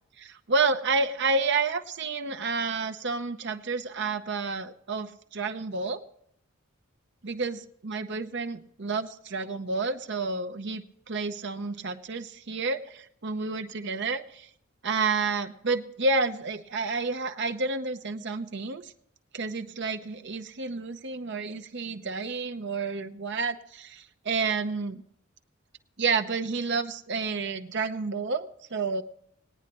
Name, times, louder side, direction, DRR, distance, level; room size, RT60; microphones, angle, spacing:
voice 1, 0.2-6.0 7.2-14.5 14.8-18.9 19.3-25.0 26.0-29.0, right 4 dB, 55° right, 8 dB, 0.9 m, -30 dB
20.0 x 9.7 x 3.0 m, 0.69 s
head